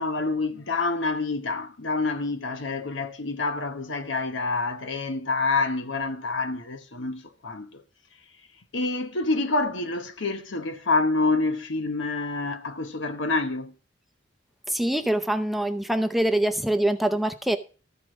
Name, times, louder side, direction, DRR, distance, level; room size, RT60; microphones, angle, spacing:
voice 1, 0.0-7.8 8.7-13.7, left 3 dB, 85° left, 1.1 m, -27 dB
voice 2, 14.7-17.6, right 1 dB, ahead, 0.6 m, -24 dB
14.0 x 4.8 x 6.2 m
head